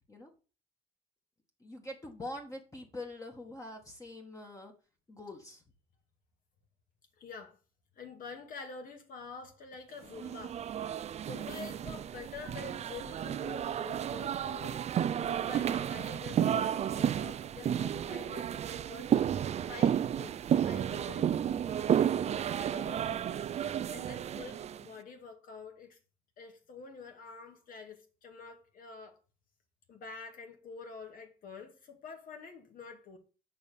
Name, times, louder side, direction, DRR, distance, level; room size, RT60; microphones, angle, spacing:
voice 1, 1.6-4.7 5.1-5.6, left 1 dB, 20° left, 1.8 m, -44 dB
voice 2, 7.2-7.6 8.0-10.6 11.2-14.8 15.2-19.1 19.7-20.4 20.6-23.4 23.7-26.0 26.4-29.2 29.9-33.2, left 5 dB, 55° left, 2.2 m, -47 dB
sound 1, 10.1-24.8, right 9 dB, 40° right, 0.4 m, -32 dB
6.8 x 4.9 x 6.8 m
cardioid pair, 110°, 17 cm